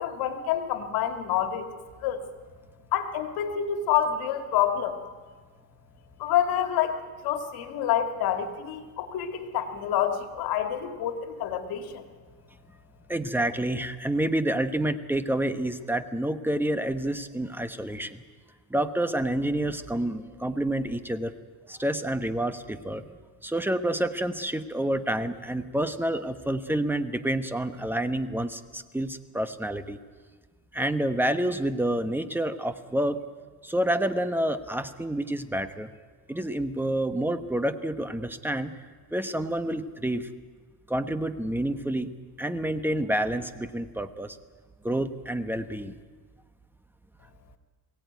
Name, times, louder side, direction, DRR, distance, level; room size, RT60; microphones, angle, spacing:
voice 1, 0.0-1.7 2.0-2.3 2.9-5.0 6.2-12.0, left 9 dB, 80° left, 6 dB, 2.3 m, -27 dB
voice 2, 13.1-18.2 18.7-21.4 21.6-23.1 23.4-30.0 30.7-33.2 33.6-35.9 36.3-38.7 39.1-40.3 40.9-42.1 42.4-44.4 44.8-46.0, right 1 dB, 5° right, 10 dB, 1.0 m, -28 dB
22.0 x 17.0 x 9.4 m, 1.5 s
cardioid pair, 120°, 37 cm